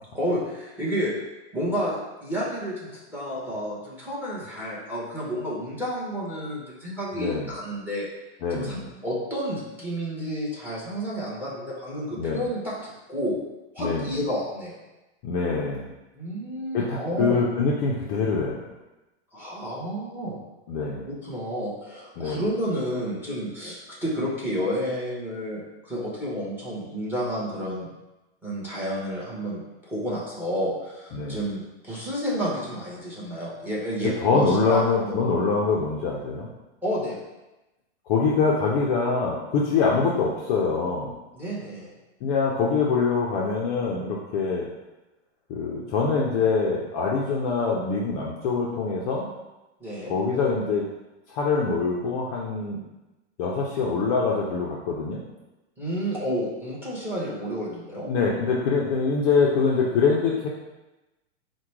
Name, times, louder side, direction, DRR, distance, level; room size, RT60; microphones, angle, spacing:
voice 1, 0.1-1.1 1.5-1.9 2.2-8.1 8.5-13.4 13.7-14.8 16.1-17.4 19.3-20.4 21.1-27.9 28.4-35.2 36.8-37.2 41.3-41.9 49.8-50.2 55.8-58.1, equal, 5° right, -6 dB, 1.0 m, -30 dB
voice 2, 7.1-7.5 8.4-8.9 12.2-12.4 13.8-14.1 15.2-15.9 16.7-18.7 20.7-21.1 22.2-22.4 31.1-31.4 34.2-36.5 38.1-41.1 42.2-44.7 45.5-49.3 50.1-50.8 51.3-52.8 53.4-55.2 58.1-60.5, left 4 dB, 35° left, -3 dB, 0.5 m, -24 dB
4.7 x 2.2 x 4.5 m, 1.0 s
supercardioid pair, 150°, 34 cm